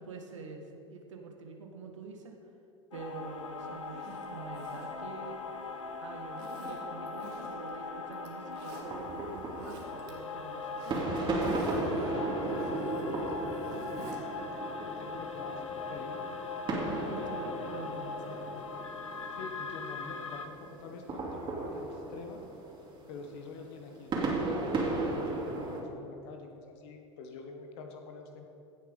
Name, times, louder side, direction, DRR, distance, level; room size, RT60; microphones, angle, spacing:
voice 1, 0.0-2.4 2.9-5.4 6.0-13.9 17.0-18.6, right 4 dB, 85° right, 3 dB, 1.5 m, -46 dB
sound 1, 2.9-20.5, left 5 dB, 85° left, 1.0 m, -40 dB
Zipper (clothing), 3.8-5.8 6.4-7.8 8.1-8.9 9.4-10.1 10.4-14.2 14.5-14.6, right 3 dB, 65° right, 2.2 m, -51 dB
sound 2, 8.7-25.8, right 2 dB, 30° right, 2.8 m, -36 dB
voice 2, 14.8-16.2 17.1-17.3 19.4-22.4 23.1-28.5, left 4 dB, 65° left, 4 dB, 1.3 m, -46 dB
16.5 x 6.9 x 5.3 m, 2.7 s
hypercardioid pair, 90°, 16 cm